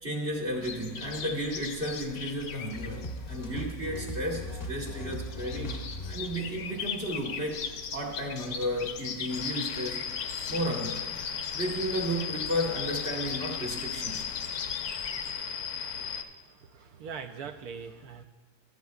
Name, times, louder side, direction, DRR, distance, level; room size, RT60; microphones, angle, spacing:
voice 1, 0.0-5.8 6.1-7.6 7.9-10.1 10.5-11.0 11.5-14.3, equal, 35° right, 0 dB, 1.5 m, -33 dB
sound 1, 0.6-15.3, left 6 dB, 60° left, 1.0 m, -40 dB
sound 2, 2.7-7.7, equal, 35° left, 0.7 m, -39 dB
sound 3, 9.3-16.2, left 7 dB, 85° left, 1.4 m, -36 dB
voice 2, 16.6-18.2, right 6 dB, 70° right, 7 dB, 1.1 m, -41 dB
15.0 x 12.0 x 2.3 m, 1.4 s
omnidirectional pair, 1.8 m